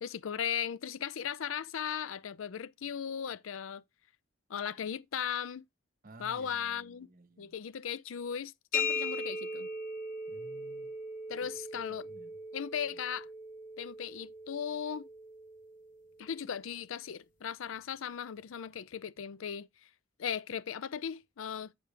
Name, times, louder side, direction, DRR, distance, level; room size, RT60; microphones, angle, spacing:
voice 1, 0.0-3.8 4.5-5.6 6.2-7.1 7.4-9.7 11.3-12.1 12.5-13.3 13.8-15.1 16.2-19.7 20.2-21.7, left 8 dB, 90° left, 0.5 m, -37 dB
voice 2, 6.0-7.5 10.3-10.9 11.4-11.5 11.8-12.4, right 2 dB, 45° right, 1.0 m, -55 dB
sound 1, 8.7-16.3, left 2 dB, 45° left, 1.1 m, -39 dB
8.6 x 5.2 x 3.2 m
head